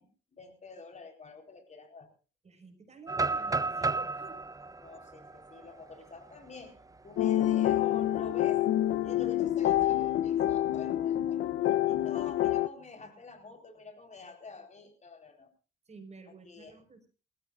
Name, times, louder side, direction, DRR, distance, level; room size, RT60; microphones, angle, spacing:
voice 1, 0.0-2.1 4.8-6.7 7.0-8.7 9.0-15.5 16.3-16.8, left 3 dB, 35° left, 5 dB, 4.2 m, -48 dB
voice 2, 2.4-4.4 15.9-17.1, right 4 dB, 35° right, 7 dB, 5.2 m, -51 dB
sound 1, 3.1-7.0 7.4-7.5 8.0-8.3 9.6-10.5, right 3 dB, 15° right, 0.7 m, -34 dB
sound 2, 7.2-12.7, left 12 dB, 80° left, 0.8 m, -27 dB
28.0 x 15.0 x 2.5 m, 0.35 s
cardioid pair, 90°, 20 cm